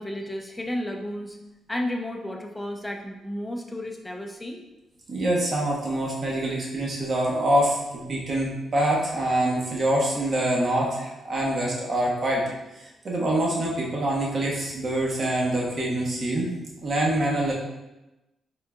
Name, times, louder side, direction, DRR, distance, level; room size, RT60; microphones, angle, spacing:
voice 1, 0.0-1.4 1.7-4.6, left 1 dB, 10° left, 2 dB, 0.5 m, -32 dB
voice 2, 5.1-12.5 12.7-16.5 16.8-17.5, right 1 dB, 45° right, -3 dB, 1.1 m, -25 dB
4.0 x 3.7 x 2.4 m, 0.99 s
cardioid pair, 95°, 0 cm